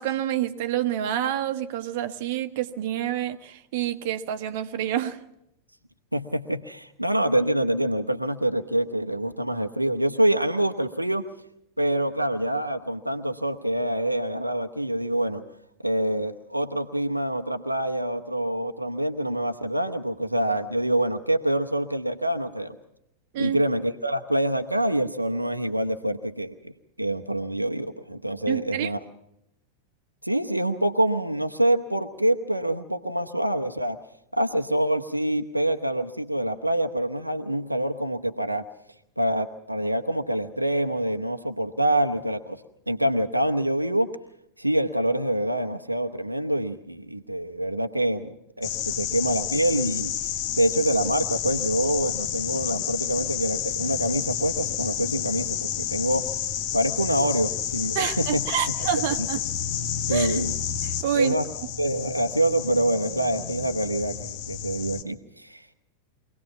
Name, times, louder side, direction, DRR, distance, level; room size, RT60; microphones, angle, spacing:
voice 1, 0.0-5.2 23.3-23.6 28.5-28.9 57.9-59.4 60.1-60.4 60.8-61.3, right 11 dB, 50° right, 1.1 m, -28 dB
voice 2, 6.1-11.3 11.8-15.4 15.8-22.8 23.4-26.7 27.0-29.0 30.2-34.0 34.3-38.6 39.2-42.6 42.9-44.1 44.6-48.3 48.6-50.1 50.6-56.3 56.7-58.4 60.1-60.5 61.1-61.5 61.8-65.6, right 1 dB, 85° right, 0.9 m, -26 dB
sound 1, 48.6-65.0, left 9 dB, 45° left, 1.2 m, -30 dB
24.0 x 18.0 x 7.2 m
figure-of-eight pair, 90°, 0 cm